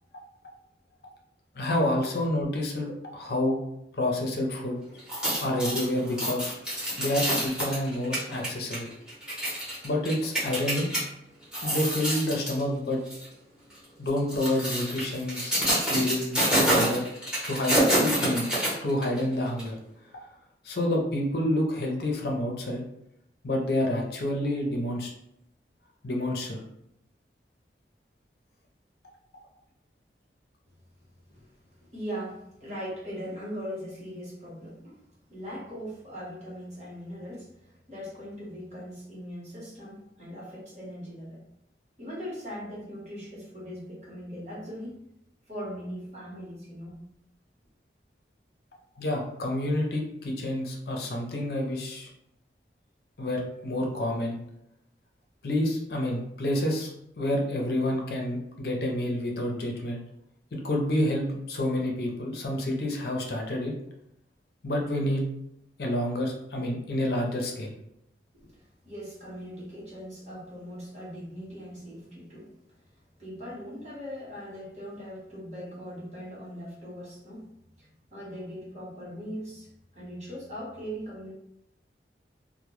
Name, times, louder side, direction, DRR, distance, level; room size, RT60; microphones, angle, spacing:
voice 1, 1.5-3.6 3.9-4.8 5.4-6.5 7.0-8.9 9.8-10.9 11.6-13.0 14.0-15.6 15.9-17.0 17.5-17.8 18.0-18.5 18.8-19.7 20.6-22.8 23.4-25.1 26.0-26.6 49.0-52.1 53.2-54.4 55.4-56.9 57.2-60.0 60.5-63.7 64.6-65.2 65.8-67.8, left 1 dB, 60° left, 0 dB, 0.5 m, -28 dB
sound 1, 5.0-11.0 11.4-12.6 13.1-13.3 14.1-19.2 19.6-19.7, right 1 dB, 5° right, 0.8 m, -27 dB
voice 2, 31.9-35.0 35.3-41.4 42.0-45.0 45.5-47.0 68.6-72.5 73.2-77.5 77.8-81.3, equal, 40° right, -7 dB, 1.0 m, -40 dB
2.1 x 2.1 x 3.0 m, 0.80 s
head